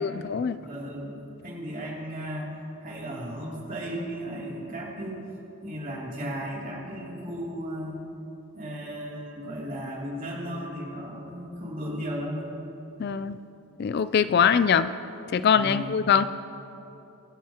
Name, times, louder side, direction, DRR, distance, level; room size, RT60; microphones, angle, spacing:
voice 1, 0.0-0.6 13.0-13.4 13.8-14.9 15.3-16.2, left 7 dB, 45° left, 13 dB, 0.3 m, -22 dB
voice 2, 0.6-5.3 5.6-8.0 8.5-12.5 15.5-16.0, equal, 40° right, -4 dB, 2.8 m, -35 dB
24.0 x 11.0 x 2.9 m, 3.0 s
head